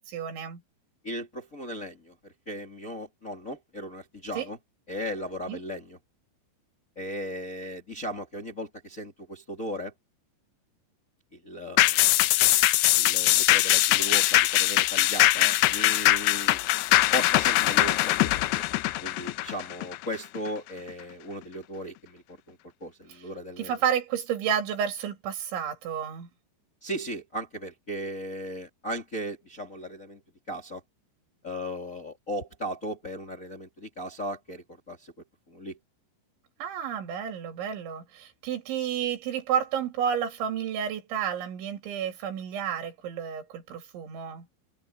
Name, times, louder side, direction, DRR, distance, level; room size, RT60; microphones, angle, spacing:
voice 1, 0.1-0.6 4.3-4.5 5.5-5.6 23.1-23.2 23.6-26.3 36.6-44.5, right 8 dB, 75° right, 4.8 m, -31 dB
voice 2, 1.0-4.6 4.9-6.0 7.0-9.9 11.3-12.2 12.9-16.6 17.1-18.6 19.0-23.7 26.8-30.2 30.5-30.8 31.4-35.1 35.5-35.8, equal, 25° left, 2.0 m, -37 dB
sound 1, 11.8-20.5 20.9-21.0, left 17 dB, 85° left, 2.3 m, -22 dB
omnidirectional pair, 5.5 m